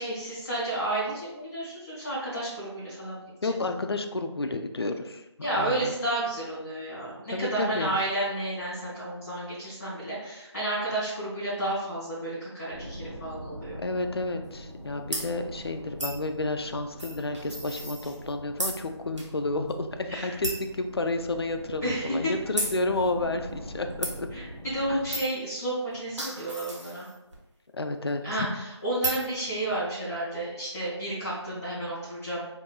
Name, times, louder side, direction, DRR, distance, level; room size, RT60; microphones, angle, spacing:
voice 1, 0.0-3.5 5.4-13.8 20.1-20.4 21.8-22.3 24.3-27.1 28.2-32.5, right 1 dB, 5° left, -19 dB, 0.7 m, -31 dB
voice 2, 3.4-5.2 5.5-5.9 7.3-8.0 13.8-24.3 24.9-25.1 27.7-28.5, left 2 dB, 60° left, 6 dB, 0.4 m, -31 dB
sound 1, 12.7-25.2, equal, 55° right, 1.4 m, -43 dB
sound 2, 15.1-15.3 16.0-16.2 17.0-18.3 18.6-18.8 19.2-19.3 19.7-19.8 20.4-20.7 21.3-21.4 22.6-22.8 24.0-24.1 25.1-25.4 25.9-27.3 29.0-29.3, right 1 dB, 80° right, 1.2 m, -33 dB
4.8 x 2.6 x 2.3 m, 0.93 s
figure-of-eight pair, 180°, 15 cm